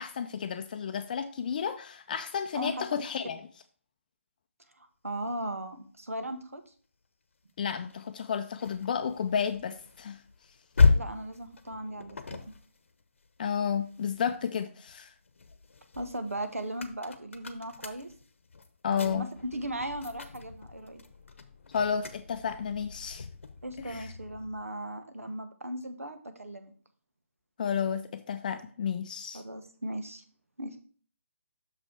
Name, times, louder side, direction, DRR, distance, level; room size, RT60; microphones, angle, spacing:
voice 1, 0.0-3.4 7.6-10.2 13.4-15.1 18.8-19.3 21.7-23.3 23.8-24.1 27.6-29.4, left 7 dB, 35° left, 0.5 m, -32 dB
voice 2, 4.8-6.6 10.8-12.4 15.9-18.1 18.9-21.0 23.6-26.7 29.3-30.2 30.6-30.8, right 1 dB, 85° right, 1.1 m, -37 dB
sound 1, 7.9-14.4 14.9-24.7, left 4 dB, 65° left, 0.9 m, -33 dB
6.3 x 5.3 x 4.6 m
figure-of-eight pair, 145°, 7 cm